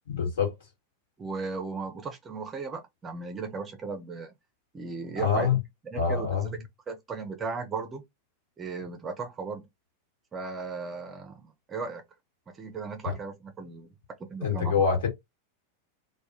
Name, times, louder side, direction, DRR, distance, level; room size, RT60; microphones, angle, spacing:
voice 1, 0.1-0.5 5.2-5.6 5.9-6.6 13.0-13.1 14.4-15.1, left 6 dB, 60° left, 1.4 m, -25 dB
voice 2, 1.2-4.3 4.7-5.6 5.9-6.6 6.9-8.0 8.6-9.7 10.3-12.0 12.5-13.9 14.2-14.9, right 4 dB, 20° right, 0.6 m, -36 dB
2.3 x 2.2 x 2.7 m
figure-of-eight pair, 90°, 0 cm